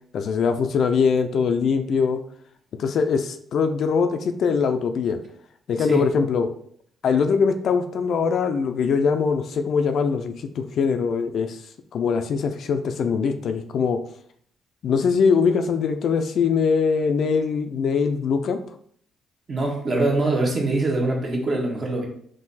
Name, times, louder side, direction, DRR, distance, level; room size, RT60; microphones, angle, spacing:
voice 1, 0.1-2.2 2.8-5.2 5.7-6.5 7.0-11.6 11.9-14.0 14.8-18.6, left 5 dB, 65° left, 8 dB, 0.4 m, -22 dB
voice 2, 19.5-22.1, right 2 dB, 35° right, 0 dB, 1.2 m, -23 dB
3.7 x 2.6 x 4.1 m, 0.63 s
cardioid pair, 90°, 0 cm